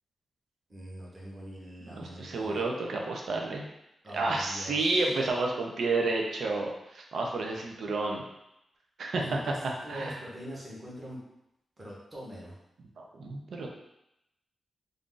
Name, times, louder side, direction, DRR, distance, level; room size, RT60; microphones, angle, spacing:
voice 1, 0.7-2.6 4.0-5.1 9.2-11.2 11.8-12.5, equal, 25° right, -5 dB, 0.9 m, -43 dB
voice 2, 1.9-3.6 4.1-8.2 9.0-9.4 9.9-10.2 13.0-13.7, right 3 dB, 65° right, 1 dB, 0.5 m, -30 dB
2.5 x 2.4 x 3.7 m, 0.85 s
wide cardioid pair, 160°, 0 cm